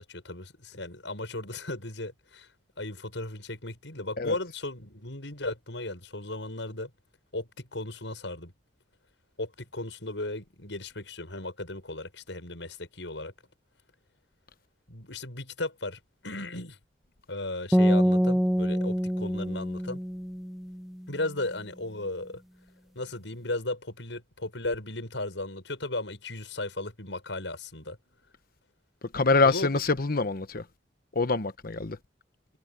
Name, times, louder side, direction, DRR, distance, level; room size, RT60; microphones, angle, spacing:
voice 1, 0.0-2.5 2.8-6.9 7.3-8.5 9.4-13.3 14.9-16.8 17.3-20.0 21.1-22.4 22.9-28.0 29.4-29.7, left 2 dB, 85° left, 6.8 m, -36 dB
sound 1, 17.7-20.9, equal, ahead, 0.6 m, -25 dB
voice 2, 29.0-30.7 31.1-32.0, left 3 dB, 55° left, 1.1 m, -25 dB
head